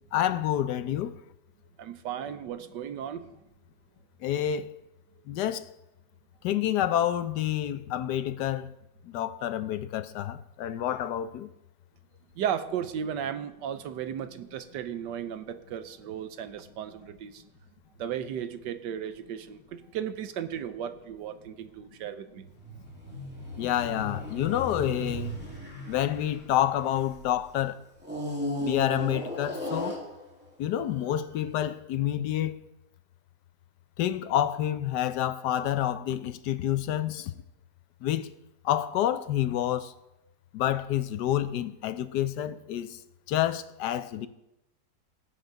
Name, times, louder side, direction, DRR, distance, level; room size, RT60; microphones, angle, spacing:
voice 1, 0.1-1.1 4.2-4.7 5.3-5.7 6.4-8.7 9.0-11.5 23.6-25.3 25.9-27.8 28.6-30.0 30.6-32.5 34.0-37.3 38.0-38.3 38.6-39.9 40.5-43.0 43.3-44.3, left 11 dB, 80° left, 1.2 m, -28 dB
voice 2, 1.8-3.3 12.3-17.4 18.0-22.5, right 9 dB, 85° right, 1.5 m, -35 dB
sound 1, 22.6-27.3 28.0-30.5 31.2-31.4, left 1 dB, 5° right, 2.4 m, -36 dB
18.0 x 8.0 x 3.9 m
omnidirectional pair, 1.8 m